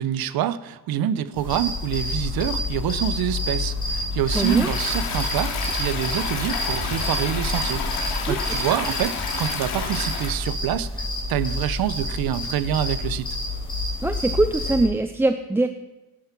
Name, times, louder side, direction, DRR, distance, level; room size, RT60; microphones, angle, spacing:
voice 1, 0.0-13.3, right 11 dB, 70° right, 15 dB, 0.7 m, -26 dB
sound 1, 1.3-14.9, left 2 dB, 15° left, 4.1 m, -29 dB
Stream, 4.3-10.3, left 5 dB, 80° left, 3.0 m, -30 dB
voice 2, 4.3-4.7 8.3-8.4 14.0-15.7, right 2 dB, 5° right, 8 dB, 0.3 m, -22 dB
12.5 x 9.7 x 5.9 m, 1.0 s
cardioid pair, 140°, 37 cm